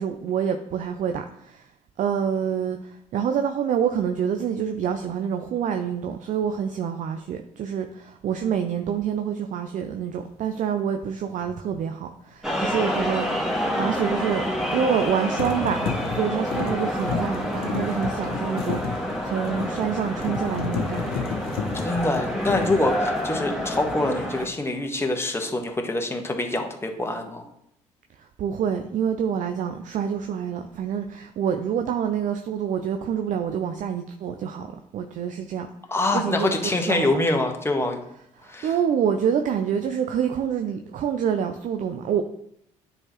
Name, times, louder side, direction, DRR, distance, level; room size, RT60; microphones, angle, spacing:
voice 1, 0.0-1.7 2.0-14.5 14.7-21.3 28.2-35.7 36.1-37.1 38.4-42.2, right 8 dB, 50° right, 5 dB, 0.5 m, -27 dB
sound 1, 11.4-11.6 14.7-15.1 15.4-23.6 23.9-24.3, left 7 dB, 60° left, 0.9 m, -32 dB
sound 2, 12.4-24.5, equal, ahead, 1.6 m, -28 dB
voice 2, 21.8-27.5 35.9-38.0 38.4-38.7, left 2 dB, 15° left, 3 dB, 1.3 m, -25 dB
9.8 x 4.0 x 3.0 m, 0.74 s
hypercardioid pair, 50°, 17 cm